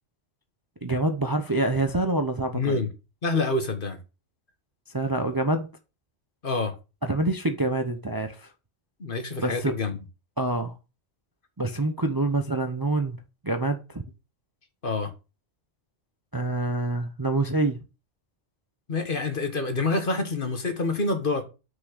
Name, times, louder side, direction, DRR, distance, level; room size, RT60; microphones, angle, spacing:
voice 1, 0.8-2.8 4.9-5.7 7.1-8.5 9.4-9.7 10.4-10.7 11.6-13.2 13.4-14.0 16.3-17.8, right 2 dB, 20° right, 0.7 m, -26 dB
voice 2, 2.5-2.9 3.2-4.0 6.4-6.7 9.0-10.0 14.8-15.1 18.9-21.4, left 3 dB, 45° left, 1.6 m, -27 dB
6.1 x 6.1 x 6.3 m
omnidirectional pair, 1.2 m